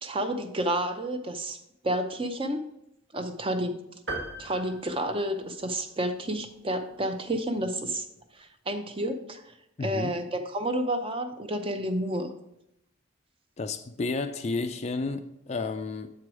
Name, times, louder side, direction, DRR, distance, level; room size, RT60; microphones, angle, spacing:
voice 1, 0.0-1.6 1.8-2.6 3.1-3.8 4.4-8.1 8.3-9.5 9.8-12.3, right 1 dB, 25° right, 6 dB, 0.6 m, -30 dB
sound 1, 4.1-5.9, right 2 dB, 60° right, 1.6 m, -38 dB
voice 2, 9.8-10.1 13.6-16.1, left 3 dB, 30° left, 9 dB, 0.3 m, -31 dB
7.6 x 4.7 x 4.8 m, 0.82 s
head